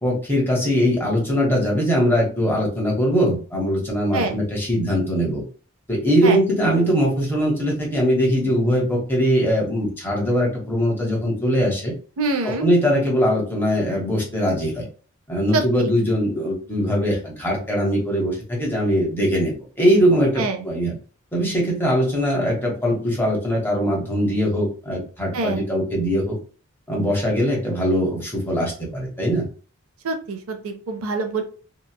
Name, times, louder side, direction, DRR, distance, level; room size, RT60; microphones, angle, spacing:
voice 1, 0.0-5.4 5.9-11.9 12.4-14.9 15.3-21.0 21.3-26.4 26.9-29.5, equal, 10° left, -3 dB, 1.0 m, -21 dB
voice 2, 12.2-12.6 15.5-15.9 20.4-20.6 25.3-25.6 30.0-31.4, right 3 dB, 75° right, 6 dB, 0.5 m, -25 dB
2.9 x 2.3 x 2.2 m, 0.38 s
head